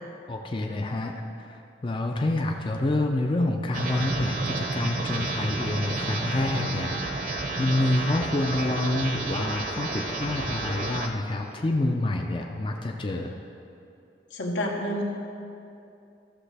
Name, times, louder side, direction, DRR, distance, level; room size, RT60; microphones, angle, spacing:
voice 1, 0.3-13.4, left 2 dB, 30° left, 2 dB, 0.4 m, -28 dB
sound 1, 3.7-11.1, right 2 dB, 50° right, 0.7 m, -31 dB
voice 2, 14.3-15.0, equal, 85° left, -1 dB, 1.3 m, -29 dB
13.5 x 6.6 x 3.4 m, 2.6 s
head